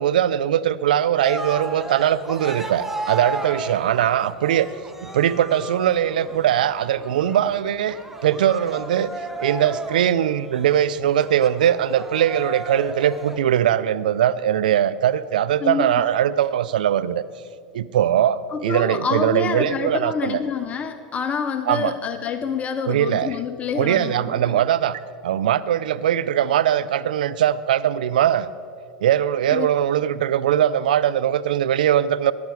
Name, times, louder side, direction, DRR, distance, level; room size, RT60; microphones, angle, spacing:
voice 1, 0.0-4.7 5.0-9.1 9.4-17.2 17.7-20.4 21.7-21.9 22.9-23.4 23.8-28.5 29.0-32.3, right 10 dB, 80° right, 15 dB, 0.4 m, -21 dB
Cheering, 1.2-13.6, right 2 dB, 5° right, 1.0 m, -34 dB
voice 2, 15.6-16.1 18.5-24.6 29.5-29.7, left 6 dB, 30° left, 9 dB, 0.7 m, -27 dB
14.5 x 10.5 x 4.7 m, 2.2 s
hypercardioid pair, 100°, 5 cm